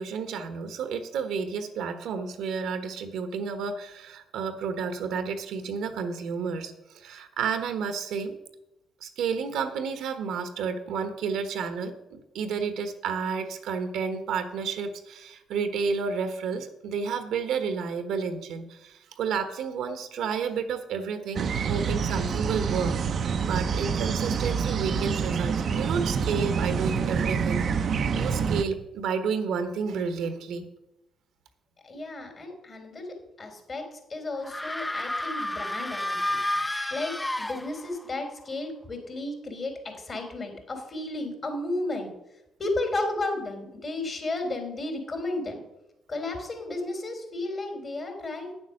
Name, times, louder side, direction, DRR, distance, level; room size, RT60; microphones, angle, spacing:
voice 1, 0.0-8.4 9.0-23.0 23.4-27.6 27.9-30.6, right 6 dB, 75° right, 9 dB, 1.2 m, -31 dB
sound 1, 21.3-28.6, right 6 dB, 60° right, 0.7 m, -27 dB
voice 2, 31.8-36.4 36.9-42.1 42.6-45.6 46.1-48.5, left 2 dB, 40° left, 3 dB, 3.5 m, -33 dB
sound 2, 34.4-38.1, left 1 dB, 10° left, 0.5 m, -31 dB
9.1 x 7.3 x 6.5 m, 0.92 s
supercardioid pair, 55°, 0 cm